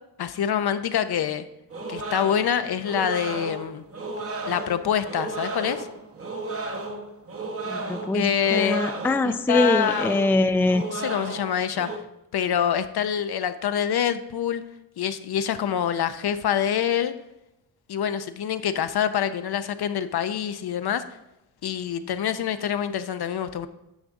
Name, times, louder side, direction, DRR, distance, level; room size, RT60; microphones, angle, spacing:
voice 1, 0.2-1.4 1.9-3.8 4.5-5.9 8.1-8.8 9.2-10.1 10.9-11.9 12.3-14.6 15.0-17.1 17.9-21.0 21.6-23.7, left 9 dB, 65° left, 10 dB, 0.7 m, -26 dB
sound 1, 1.7-12.0, right 2 dB, 35° right, 1.1 m, -34 dB
voice 2, 7.7-10.8, left 2 dB, 5° left, 9 dB, 0.3 m, -23 dB
11.0 x 6.6 x 3.7 m, 0.89 s
wide cardioid pair, 110°, 41 cm